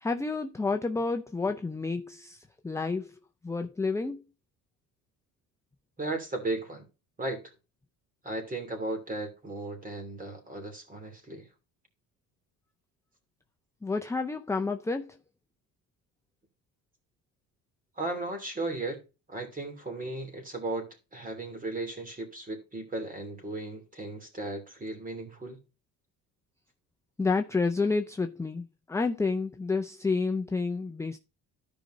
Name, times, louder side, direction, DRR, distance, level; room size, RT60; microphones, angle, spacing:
voice 1, 0.0-3.2 3.4-4.2 13.8-15.2 27.2-31.2, left 4 dB, 10° left, 0.5 m, -30 dB
voice 2, 6.0-6.9 7.2-7.4 8.2-11.5 18.0-19.0 19.3-25.6, right 2 dB, 20° right, 3.0 m, -36 dB
13.5 x 5.3 x 2.7 m
cardioid pair, 115°, 38 cm